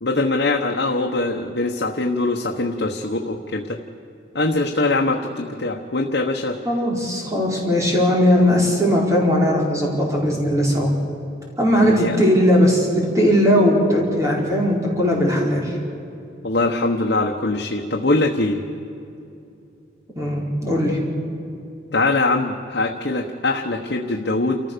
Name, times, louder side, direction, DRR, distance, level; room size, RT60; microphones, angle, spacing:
voice 1, 0.0-3.8 4.3-6.6 11.8-12.1 16.4-18.6 21.9-24.6, left 2 dB, 65° left, 1 dB, 1.1 m, -22 dB
voice 2, 6.6-10.9 11.6-15.8 20.2-21.0, equal, 15° right, -3 dB, 4.3 m, -18 dB
29.5 x 14.5 x 6.8 m, 2.7 s
head